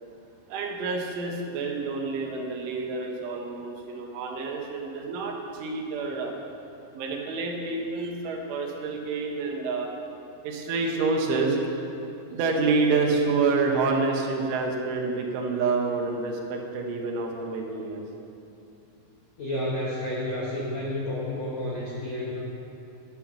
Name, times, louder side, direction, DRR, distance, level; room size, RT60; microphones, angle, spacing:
voice 1, 0.5-6.4 6.9-9.9 10.4-11.6 12.3-18.0, right 4 dB, 75° right, 1 dB, 3.6 m, -28 dB
voice 2, 19.4-22.4, left 1 dB, 80° left, -6 dB, 1.5 m, -30 dB
12.0 x 9.9 x 5.9 m, 2.7 s
omnidirectional pair, 5.8 m